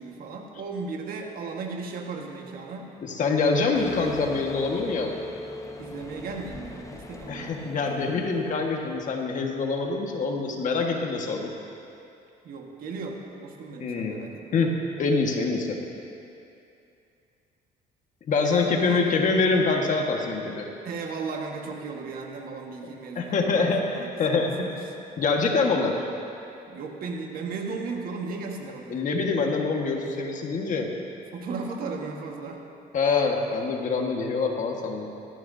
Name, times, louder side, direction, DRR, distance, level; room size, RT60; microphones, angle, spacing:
voice 1, 0.0-2.9 5.8-8.3 12.4-14.6 18.4-19.1 20.8-24.9 26.7-29.0 31.3-32.6, right 4 dB, 60° right, 1 dB, 1.6 m, -36 dB
voice 2, 3.0-5.1 7.3-11.5 13.8-14.2 14.5-15.8 18.3-20.7 23.1-24.7 25.2-25.9 28.9-30.9 32.9-35.1, left 4 dB, 50° left, 1 dB, 1.6 m, -25 dB
sound 1, 3.7-9.3, left 2 dB, 20° left, 0.9 m, -40 dB
19.0 x 14.0 x 2.8 m, 2.6 s
cardioid pair, 110°, 17 cm